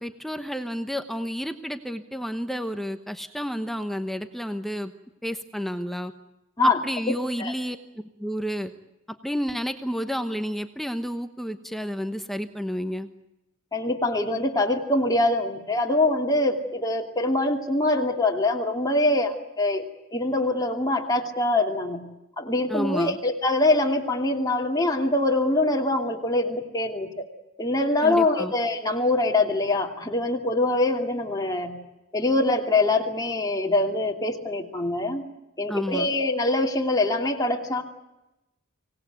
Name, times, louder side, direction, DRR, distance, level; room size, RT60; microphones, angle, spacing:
voice 1, 0.0-4.9 5.2-6.1 6.6-8.7 9.2-13.1 22.7-23.2 28.0-28.5 35.7-36.1, equal, ahead, 8 dB, 1.0 m, -31 dB
voice 2, 7.1-7.5 13.7-22.0 22.4-27.3 27.6-31.8 32.1-35.2 35.6-37.8, left 2 dB, 20° left, 1 dB, 2.7 m, -24 dB
25.0 x 18.5 x 9.4 m, 0.96 s
head